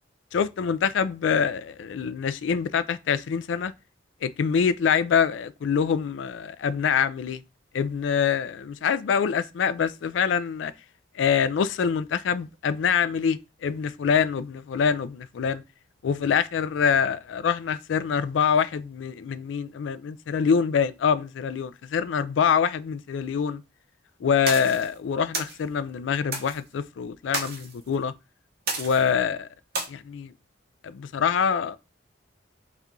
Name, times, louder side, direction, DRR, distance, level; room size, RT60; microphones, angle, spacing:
voice 1, 0.3-3.7 4.2-7.4 7.7-10.7 11.1-15.6 16.0-23.6 24.2-28.1 28.8-29.5 29.9-30.3 30.8-31.8, left 6 dB, 85° left, 0.4 m, -25 dB
sound 1, 24.5-24.9 25.3-25.6 26.3-26.6 27.3-27.7 28.7-29.1 29.7-29.8, right 3 dB, 55° right, 1.0 m, -31 dB
4.2 x 2.4 x 3.7 m
head